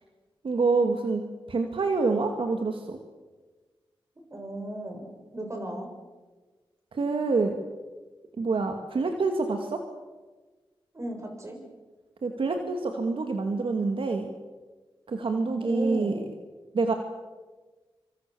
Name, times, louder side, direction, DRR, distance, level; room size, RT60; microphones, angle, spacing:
voice 1, 0.4-1.2 1.5-3.0 6.9-7.6 8.4-9.8 12.2-14.3 15.1-16.2 16.7-16.9, right 3 dB, 65° right, 4 dB, 2.3 m, -26 dB
voice 2, 4.3-5.9 10.9-11.6 15.6-16.3, right 1 dB, 30° right, 3 dB, 7.2 m, -35 dB
26.0 x 25.5 x 7.1 m, 1.3 s
wide cardioid pair, 85°, 9 cm